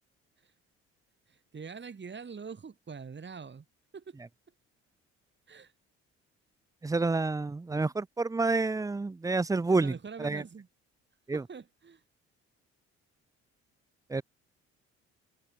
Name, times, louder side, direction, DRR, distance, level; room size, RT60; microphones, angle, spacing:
voice 1, 1.3-3.7 3.9-4.2 5.5-5.7 7.7-7.9 9.7-10.7 11.3-12.0, right 5 dB, 35° right, 4.1 m, -44 dB
voice 2, 6.8-9.9 10.2-10.4 11.3-11.4 14.1-14.2, right 3 dB, 10° right, 0.5 m, -28 dB
supercardioid pair, 65°, 31 cm